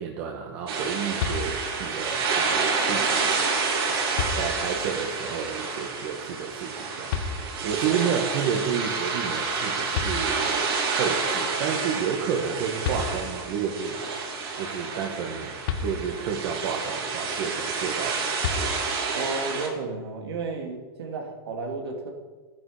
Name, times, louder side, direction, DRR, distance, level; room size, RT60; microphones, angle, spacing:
voice 1, 0.0-3.2 3.9-4.0 4.3-10.6 10.9-14.0 14.6-15.5 15.8-18.3, right 7 dB, 55° right, 0 dB, 1.9 m, -31 dB
sound 1, 0.7-19.7, right 4 dB, 75° right, 5.1 m, -29 dB
sound 2, 1.2-1.9 3.5-3.6 4.1-4.9 7.1-7.9 9.6-9.7 9.9-10.8 12.5-12.6 12.8-13.6 15.6-16.5 18.4-19.2, left 6 dB, 70° left, 1.7 m, -32 dB
voice 2, 19.1-22.1, right 4 dB, 90° right, 2 dB, 2.9 m, -32 dB
15.0 x 11.0 x 5.2 m, 1.4 s
supercardioid pair, 140°, 13 cm